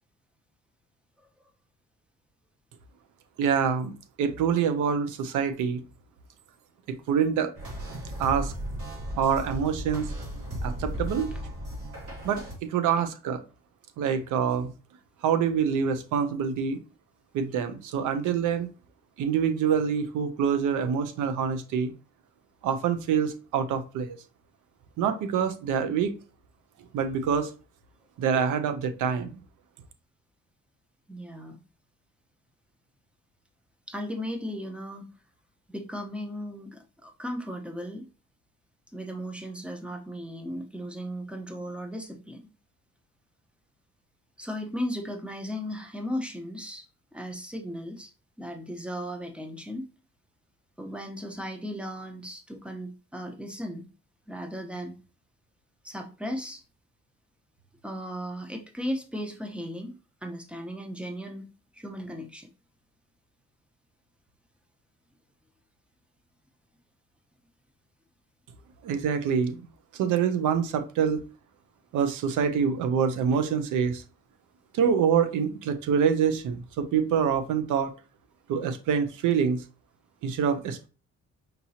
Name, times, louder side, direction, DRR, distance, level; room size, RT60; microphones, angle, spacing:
voice 1, 3.4-3.9 4.2-5.8 7.1-7.5 8.2-8.5 9.2-10.1 10.6-11.3 12.2-13.4 14.0-14.7 15.2-16.8 17.3-18.7 19.2-21.9 22.6-24.2 25.0-26.1 26.9-27.5 28.2-29.3 68.8-69.6 69.9-71.2 71.9-74.0 74.7-77.9 78.5-79.6 80.2-80.9, right 7 dB, 85° right, 0.7 m, -26 dB
sound 1, 7.5-12.5, equal, 50° right, 2.6 m, -35 dB
voice 2, 31.1-31.6 33.9-35.0 35.7-38.1 38.9-42.4 44.4-48.1 48.4-49.9 50.8-53.8 54.3-54.9 55.8-56.6 57.8-59.9 60.2-61.4 61.7-62.5, equal, 5° right, 1.0 m, -36 dB
5.3 x 3.0 x 2.8 m
cardioid pair, 90°, 30 cm